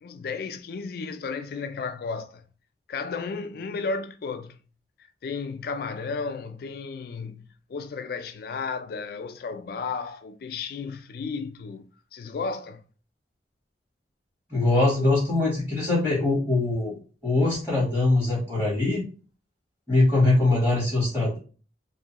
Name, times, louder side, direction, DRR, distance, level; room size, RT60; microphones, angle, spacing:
voice 1, 0.0-2.4 2.9-4.6 5.2-12.8, left 4 dB, 55° left, 0.3 m, -33 dB
voice 2, 14.5-16.9 17.2-19.0 19.9-21.4, left 2 dB, 10° right, 1.0 m, -22 dB
2.7 x 2.2 x 2.8 m
head